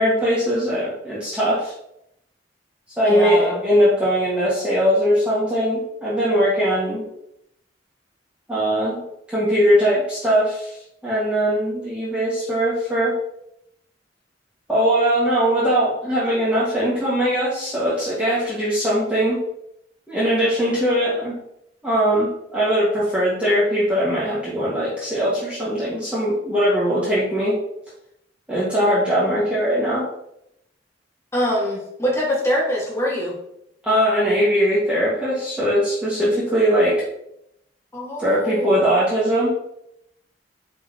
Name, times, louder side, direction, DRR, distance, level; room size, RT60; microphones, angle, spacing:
voice 1, 0.0-1.7 3.0-7.0 8.5-9.0 9.3-10.8 11.0-13.2 14.7-19.4 20.1-21.3 21.8-27.6 28.5-30.1 33.8-37.0 38.2-39.5, equal, 5° right, -10 dB, 1.8 m, -20 dB
voice 2, 3.0-3.6 31.3-33.4 37.9-38.7, left 1 dB, 15° left, -5 dB, 2.1 m, -24 dB
9.7 x 4.3 x 3.0 m, 0.79 s
head